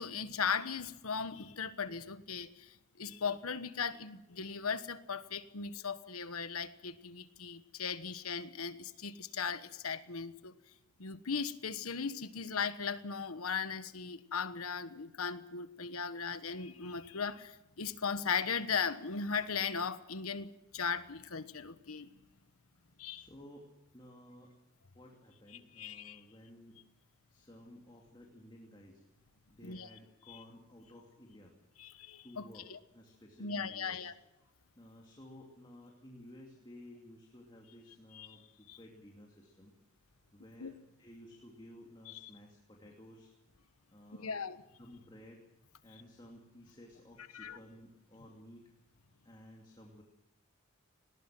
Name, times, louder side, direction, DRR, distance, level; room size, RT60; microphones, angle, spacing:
voice 1, 0.0-10.5 11.0-22.1 23.0-23.3 25.8-26.2 29.6-29.9 30.3-30.4 31.8-32.8 33.4-34.1 38.1-38.3 38.7-38.8 40.6-40.7 42.1-42.3 44.1-44.6 47.3-47.6, left 6 dB, 85° left, 12 dB, 1.2 m, -38 dB
voice 2, 23.1-24.5 24.9-26.8 27.3-29.0 29.5-31.6 32.2-34.1 34.8-39.7 40.3-43.3 43.9-44.4 44.8-45.4 45.8-48.7 49.2-50.0, left 1 dB, 20° left, 0 dB, 2.7 m, -55 dB
19.5 x 19.0 x 7.6 m, 0.94 s
head